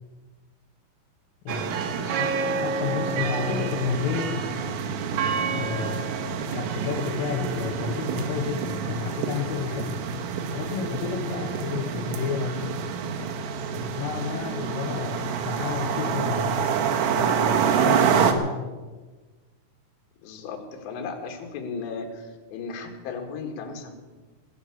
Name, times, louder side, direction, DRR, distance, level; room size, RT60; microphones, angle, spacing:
voice 1, 1.5-4.4 5.5-10.0 10.5-12.6 13.2-13.3 13.7-16.8 17.2-18.7, left 7 dB, 85° left, 6 dB, 3.7 m, -31 dB
sound 1, 1.5-18.3, right 7 dB, 85° right, 4.0 m, -27 dB
voice 2, 20.2-24.0, left 5 dB, 65° left, 4 dB, 3.9 m, -36 dB
20.0 x 8.5 x 8.4 m, 1.3 s
omnidirectional pair, 5.7 m